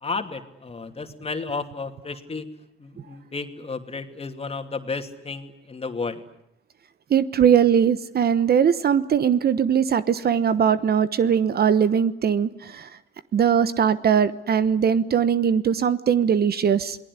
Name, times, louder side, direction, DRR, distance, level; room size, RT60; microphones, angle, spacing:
voice 1, 0.0-2.5 2.8-6.2, left 4 dB, 30° left, 2.7 m, -32 dB
voice 2, 7.1-12.9 13.3-17.0, right 8 dB, 50° right, 1.1 m, -20 dB
27.5 x 19.0 x 9.8 m
cardioid pair, 90°, 20 cm